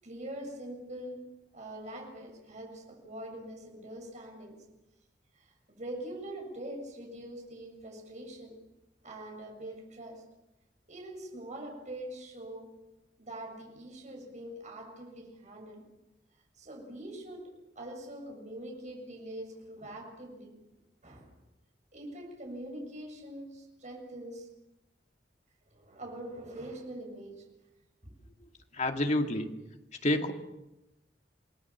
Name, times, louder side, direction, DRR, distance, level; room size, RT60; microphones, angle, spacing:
voice 1, 0.0-4.7 5.3-8.6 9.0-10.3 10.9-12.8 13.2-15.8 16.5-20.6 21.0-21.3 21.9-24.5 25.6-27.6 28.0-28.1, right 1 dB, 45° right, 7.2 m, -44 dB
voice 2, 28.8-29.5 30.0-30.3, left 1 dB, 40° left, 2.5 m, -28 dB
29.0 x 19.5 x 7.4 m
head